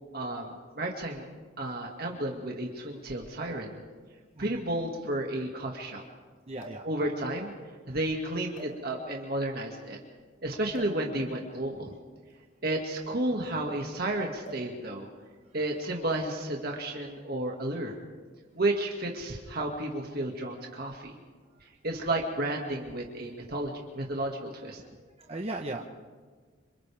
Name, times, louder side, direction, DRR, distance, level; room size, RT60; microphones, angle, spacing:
voice 1, 0.1-1.2 1.6-3.7 4.4-6.0 6.8-7.5 7.9-10.0 10.4-11.9 12.6-15.1 15.5-17.9 18.6-21.1 21.6-24.8, right 1 dB, 50° right, 0 dB, 2.1 m, -32 dB
sound 1, 4.0-4.1 4.4-4.5 6.6-7.0 7.8-8.0 8.5-9.2 10.7-11.1 12.2-13.8 14.4-14.8 15.1-15.3 16.1-16.5 17.4-17.7, right 1 dB, 80° left, 6.4 m, -48 dB
voice 2, 6.5-6.8 11.8-12.0 13.4-13.5 25.2-25.9, right 2 dB, 30° right, 1 dB, 1.1 m, -37 dB
27.5 x 26.5 x 3.6 m, 1.5 s
head